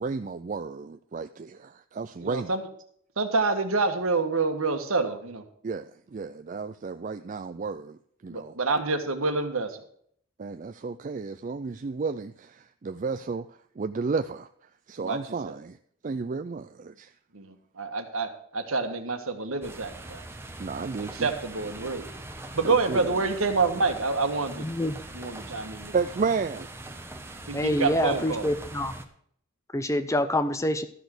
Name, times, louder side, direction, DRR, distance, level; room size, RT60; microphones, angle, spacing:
voice 1, 0.0-2.6 5.6-8.0 8.2-8.5 10.4-13.5 13.8-14.5 14.9-15.8 16.0-17.1 20.6-21.3 22.6-23.2 25.9-26.7, right 4 dB, 35° right, 0.4 m, -32 dB
voice 2, 2.2-2.7 3.2-5.4 8.3-9.8 15.0-15.6 17.3-20.2 21.1-22.1 22.5-24.7 25.1-26.0 27.5-28.5, right 3 dB, 75° right, 1.6 m, -27 dB
sound 1, 19.6-29.1, right 2 dB, 10° right, 0.9 m, -42 dB
voice 3, 24.6-25.0 27.5-28.9 29.7-30.9, left 1 dB, 15° left, 0.6 m, -26 dB
12.5 x 6.1 x 6.6 m
head